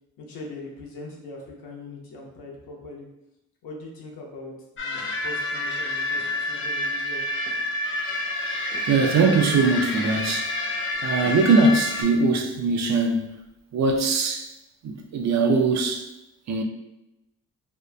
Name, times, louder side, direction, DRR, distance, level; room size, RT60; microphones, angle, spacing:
voice 1, 0.2-3.1 3.6-7.2, left 2 dB, 90° left, 0.7 m, -41 dB
sound 1, 4.8-12.0, left 2 dB, 35° left, 0.5 m, -28 dB
voice 2, 8.9-10.5 11.0-13.4 13.7-14.5 14.8-16.1 16.5-16.6, right 3 dB, 50° right, 0.5 m, -21 dB
2.8 x 2.1 x 2.4 m
cardioid pair, 70°, 35 cm